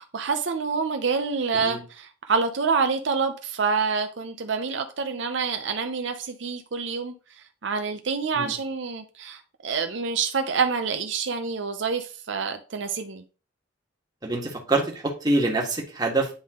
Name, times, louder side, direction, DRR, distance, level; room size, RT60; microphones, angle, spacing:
voice 1, 0.0-13.2, right 5 dB, 70° right, 0.7 m, -27 dB
voice 2, 14.2-16.3, right 2 dB, 20° right, 1.6 m, -25 dB
9.5 x 3.7 x 3.7 m
head